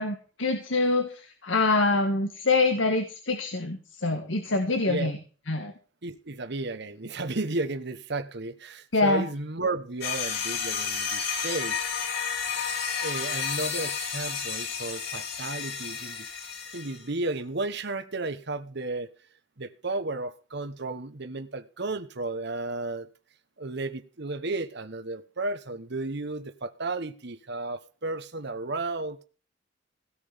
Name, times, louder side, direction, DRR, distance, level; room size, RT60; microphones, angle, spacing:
voice 1, 0.0-5.2 5.5-5.7 8.9-9.2, left 3 dB, 80° left, 1.9 m, -25 dB
voice 2, 6.0-11.8 13.0-16.3 16.7-19.1 19.6-23.1 23.6-29.2, right 2 dB, 65° right, 1.3 m, -33 dB
sound 1, 10.0-17.0, left 6 dB, 60° left, 4.9 m, -31 dB
17.0 x 6.2 x 7.0 m
head